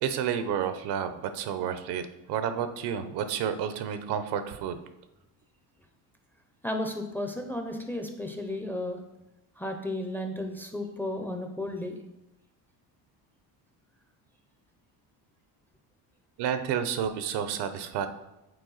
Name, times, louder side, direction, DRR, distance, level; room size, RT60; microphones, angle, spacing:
voice 1, 0.0-4.8 16.4-18.1, right 8 dB, 75° right, 10 dB, 0.8 m, -30 dB
voice 2, 6.6-9.0 9.6-12.0, left 1 dB, 5° left, 5 dB, 0.4 m, -33 dB
7.9 x 4.2 x 3.9 m, 0.96 s
cardioid pair, 145°, 40 cm